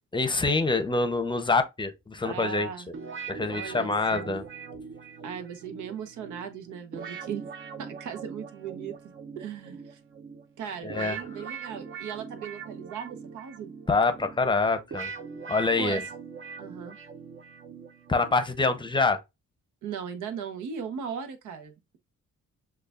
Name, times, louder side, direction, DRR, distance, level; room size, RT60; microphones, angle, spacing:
voice 1, 0.1-2.7 3.3-4.4 10.8-11.2 13.9-15.1 15.5-16.0 18.1-19.2, left 3 dB, 15° left, 0.7 m, -25 dB
voice 2, 2.2-2.9 3.5-4.2 5.2-7.5 7.8-10.0 10.6-13.7 15.8-16.0 16.6-17.0 19.8-22.0, right 7 dB, 80° right, 1.0 m, -38 dB
sound 1, 2.9-18.9, right 5 dB, 45° right, 0.7 m, -42 dB
6.6 x 2.4 x 2.4 m
cardioid pair, 90°, 30 cm